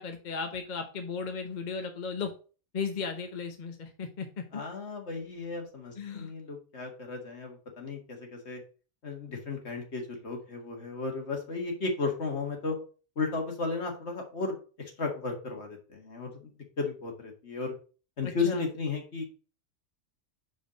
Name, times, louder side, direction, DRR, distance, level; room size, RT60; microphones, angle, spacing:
voice 1, 0.0-2.3 2.7-4.6 5.9-6.3 18.2-18.7, left 5 dB, 40° left, 5 dB, 0.9 m, -36 dB
voice 2, 4.5-8.6 9.0-12.8 13.2-16.5 16.8-17.7 18.2-19.3, left 4 dB, 65° left, 2 dB, 2.1 m, -34 dB
5.2 x 4.7 x 6.3 m, 0.36 s
omnidirectional pair, 1.2 m